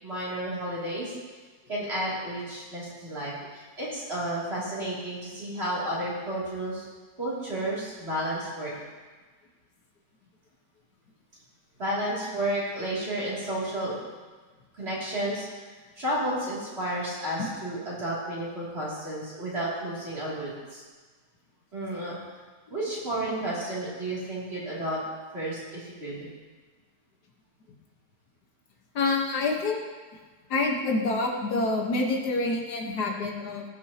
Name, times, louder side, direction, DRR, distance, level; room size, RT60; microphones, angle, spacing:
voice 1, 0.0-1.1 1.7-6.8 7.2-8.7 11.8-14.0 14.7-20.8 21.7-22.2 22.7-25.0 25.3-26.3, right 1 dB, 40° right, -8 dB, 3.0 m, -32 dB
voice 2, 29.0-29.8 30.5-33.6, left 3 dB, 75° left, 0 dB, 1.7 m, -27 dB
18.5 x 6.3 x 2.8 m, 1.4 s
omnidirectional pair, 1.7 m